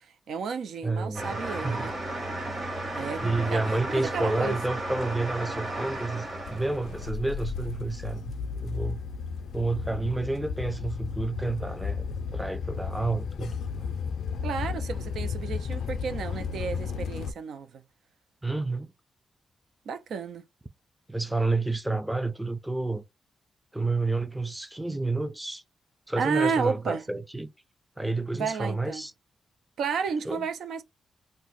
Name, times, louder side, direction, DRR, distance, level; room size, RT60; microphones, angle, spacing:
voice 1, 0.0-1.9 2.9-3.6 3.9-4.6 14.4-17.8 19.9-20.4 26.2-27.0 28.4-29.0 29.8-30.8, right 5 dB, 85° right, 0.4 m, -32 dB
voice 2, 0.8-1.9 3.2-8.3 8.6-9.0 9.5-13.5 18.4-18.9 21.1-23.0 23.7-25.6 26.1-27.5 28.0-29.1 30.3-30.5, right 2 dB, 10° right, 0.4 m, -30 dB
sound 1, 1.1-7.1, right 1 dB, 40° right, 1.3 m, -34 dB
sound 2, 6.5-17.3, left 6 dB, 80° left, 0.4 m, -34 dB
2.6 x 2.1 x 3.7 m
cardioid pair, 90°, 0 cm